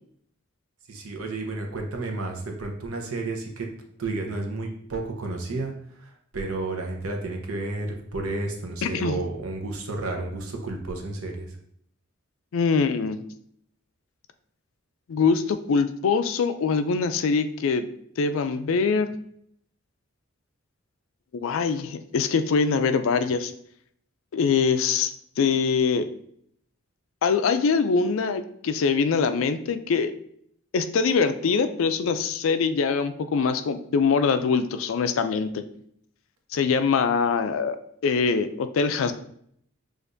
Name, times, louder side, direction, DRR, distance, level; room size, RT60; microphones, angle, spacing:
voice 1, 0.9-3.7 4.0-5.7 6.0-11.5, right 2 dB, 85° right, 2 dB, 0.8 m, -31 dB
voice 2, 8.8-9.2 12.5-13.2 15.1-17.9 18.2-19.2 21.3-23.5 24.3-25.1 25.4-26.1 27.2-30.1 30.7-35.6 36.5-37.8 38.0-39.1, left 5 dB, 70° left, 10 dB, 0.3 m, -23 dB
6.4 x 2.5 x 2.6 m, 0.66 s
head